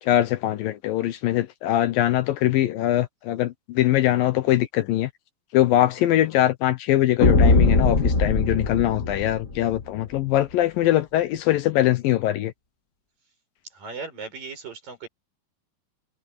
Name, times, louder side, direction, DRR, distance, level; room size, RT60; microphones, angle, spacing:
voice 1, 0.0-5.1 5.5-12.5, left 13 dB, 75° left, 2.4 m, -22 dB
sound 1, 7.2-9.8, left 3 dB, 35° left, 1.4 m, -20 dB
voice 2, 13.7-15.1, right 4 dB, 60° right, 9.2 m, -37 dB
omnidirectional pair, 4.5 m